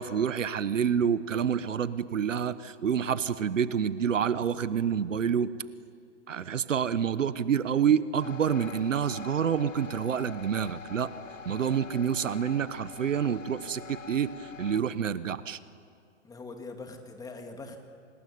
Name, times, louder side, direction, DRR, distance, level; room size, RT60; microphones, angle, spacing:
voice 1, 0.0-5.5 6.3-11.1 11.4-15.6, right 8 dB, 80° right, 15 dB, 1.3 m, -28 dB
sound 1, 8.2-14.8, left 6 dB, 80° left, 1.5 m, -45 dB
voice 2, 16.2-17.8, left 3 dB, 10° left, 5 dB, 2.4 m, -43 dB
28.0 x 20.0 x 9.5 m, 2.2 s
hypercardioid pair, 135°, 38 cm